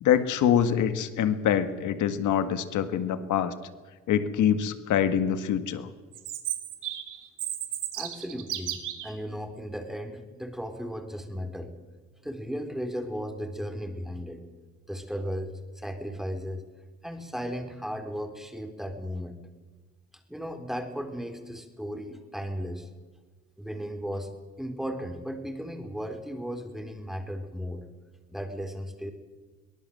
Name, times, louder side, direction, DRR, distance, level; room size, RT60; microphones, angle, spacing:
voice 1, 0.0-3.5 4.1-5.9, left 9 dB, 80° left, 11 dB, 1.8 m, -25 dB
Chirp tweet, 6.1-9.1, right 11 dB, 85° right, 2.8 m, -34 dB
voice 2, 8.0-8.8 9.0-11.7 12.2-14.4 14.9-16.6 17.0-19.3 20.3-22.9 23.6-27.8 28.3-29.1, equal, ahead, 5 dB, 3.9 m, -35 dB
23.0 x 19.0 x 7.8 m, 1.3 s
cardioid pair, 90°, 30 cm